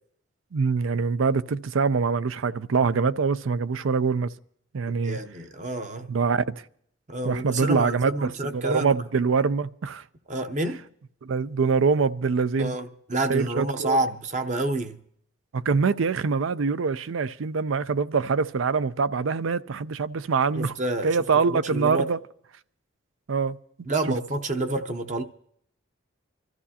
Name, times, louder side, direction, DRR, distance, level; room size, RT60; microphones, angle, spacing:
voice 1, 0.5-4.3 4.7-5.2 6.1-6.6 7.2-10.0 11.2-12.8 13.3-14.0 15.5-20.7 21.0-22.2 23.3-23.6, right 5 dB, 80° right, 0.5 m, -24 dB
voice 2, 5.0-6.1 7.1-9.0 10.3-10.8 12.6-15.0 20.6-21.2 21.5-22.1 23.9-25.2, right 2 dB, 35° right, 0.7 m, -28 dB
25.5 x 13.5 x 2.8 m
head